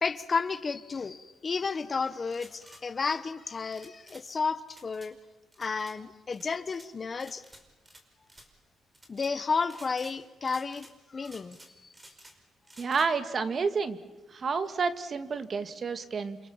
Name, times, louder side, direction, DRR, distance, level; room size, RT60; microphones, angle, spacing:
voice 1, 0.0-5.2 5.6-7.4 9.1-10.9 11.1-11.6 11.8-11.9, left 5 dB, 35° left, 14 dB, 1.1 m, -32 dB
sound 1, 2.2-2.8 3.7-4.2 4.7-5.1 5.5-6.0 6.3-6.9 7.2-8.0 8.3-8.5 8.9-9.3 9.7-10.2 10.4-10.9 11.2-12.4 12.6-13.1, right 1 dB, 15° right, 5.4 m, -53 dB
voice 2, 12.8-14.0 14.3-16.5, right 5 dB, 45° right, 10 dB, 2.0 m, -30 dB
29.5 x 26.5 x 7.3 m, 1.1 s
cardioid pair, 90°, 0 cm